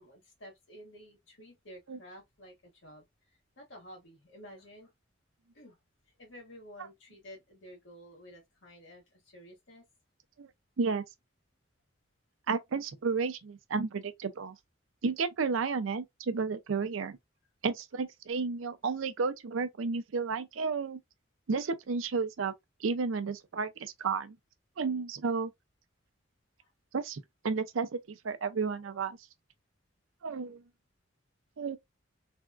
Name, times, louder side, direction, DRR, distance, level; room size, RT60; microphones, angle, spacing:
voice 1, 0.0-4.9 5.5-5.8 6.2-9.9 26.6-26.7, equal, 70° left, 1.8 m, -52 dB
voice 2, 12.5-14.6 15.0-17.2 17.6-21.0 21.5-22.5 22.8-24.4 24.8-25.5 26.9-29.2 30.2-30.6 31.6-31.8, right 4 dB, 85° right, 0.5 m, -32 dB
3.5 x 2.4 x 2.2 m
head